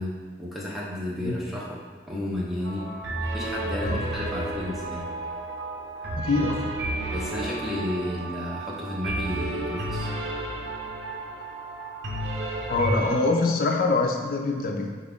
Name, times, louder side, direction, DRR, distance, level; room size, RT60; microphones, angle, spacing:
voice 1, 0.0-2.9 3.3-5.1 6.4-6.5 7.1-10.1, left 1 dB, ahead, -6 dB, 0.6 m, -32 dB
sound 1, 2.6-13.1, right 1 dB, 80° right, 0.7 m, -32 dB
voice 2, 6.2-6.6 12.7-14.9, left 3 dB, 50° left, 2 dB, 0.4 m, -24 dB
4.4 x 2.5 x 3.5 m, 1.5 s
head